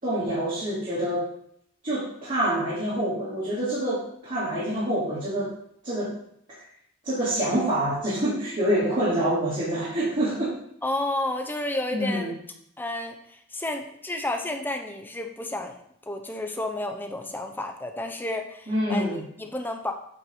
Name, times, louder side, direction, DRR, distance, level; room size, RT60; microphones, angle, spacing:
voice 1, 0.0-1.3 1.8-5.5 5.8-6.1 7.0-10.6 11.9-12.3 18.7-19.2, right 1 dB, 40° right, -11 dB, 3.1 m, -26 dB
voice 2, 10.8-12.3 12.8-15.8 16.1-19.9, left 2 dB, 10° left, 4 dB, 0.6 m, -31 dB
8.8 x 4.6 x 4.8 m, 0.69 s
head